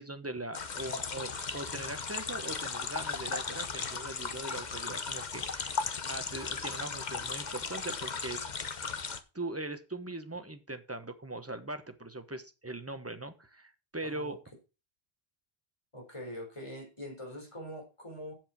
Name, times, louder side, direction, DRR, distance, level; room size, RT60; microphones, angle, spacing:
voice 1, 0.0-8.5 9.3-14.4, right 2 dB, 15° right, 8 dB, 1.1 m, -41 dB
sound 1, 0.5-9.2, left 5 dB, 45° left, 1.0 m, -36 dB
voice 2, 14.0-14.4 15.9-18.3, equal, 30° left, 1 dB, 4.2 m, -43 dB
7.7 x 7.7 x 6.0 m, 0.30 s
omnidirectional pair, 1.1 m